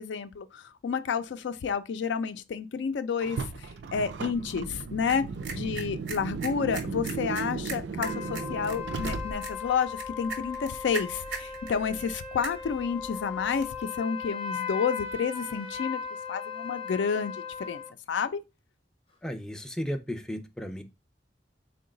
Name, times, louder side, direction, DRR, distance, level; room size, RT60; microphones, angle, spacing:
voice 1, 0.0-16.0 16.3-17.8 18.1-18.4, left 6 dB, 85° left, 0.4 m, -30 dB
Car, 3.2-9.7, right 5 dB, 75° right, 0.4 m, -36 dB
sound 1, 4.3-13.8, right 4 dB, 90° right, 1.0 m, -42 dB
sound 2, 8.0-17.9, left 6 dB, 35° left, 0.7 m, -37 dB
voice 2, 19.2-20.8, equal, 5° left, 0.3 m, -34 dB
3.8 x 2.2 x 3.7 m
head